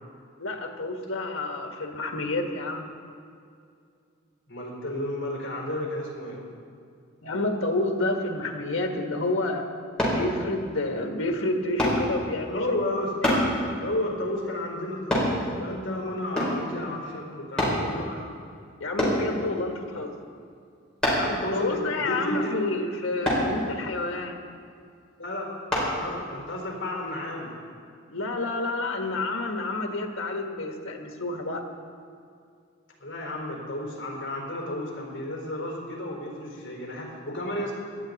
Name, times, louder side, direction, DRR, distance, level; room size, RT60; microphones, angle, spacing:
voice 1, 0.4-2.9 7.2-9.7 10.1-12.7 13.2-13.3 18.8-20.2 21.5-24.4 28.1-31.7, left 2 dB, 85° left, 3 dB, 1.5 m, -29 dB
voice 2, 4.5-6.4 12.5-13.3 13.8-18.2 21.1-22.5 25.2-27.6 33.0-37.7, left 1 dB, 60° left, -2 dB, 4.4 m, -32 dB
sound 1, 10.0-10.2 11.8-12.0 13.2-13.5 15.1-15.3 16.3-16.6 17.6-17.8 19.0-19.2 21.0-21.3 23.2-23.5 25.7-25.9 26.5-26.6, left 1 dB, 5° left, 3.8 m, -24 dB
18.0 x 12.0 x 4.1 m, 2.4 s
head